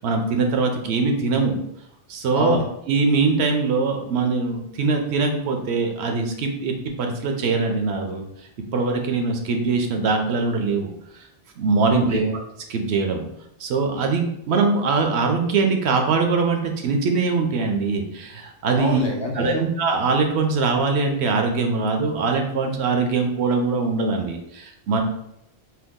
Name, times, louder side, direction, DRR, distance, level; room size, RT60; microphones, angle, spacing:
voice 1, 0.0-1.6 2.1-2.6 2.9-8.2 8.7-10.9 11.6-12.2 12.7-13.2 13.6-19.0 19.4-25.0, right 4 dB, 75° right, 3 dB, 0.8 m, -22 dB
voice 2, 2.3-2.6 11.9-12.4 18.8-19.7, left 2 dB, 40° left, -1 dB, 0.4 m, -26 dB
2.8 x 2.2 x 3.5 m, 0.78 s
omnidirectional pair, 1.1 m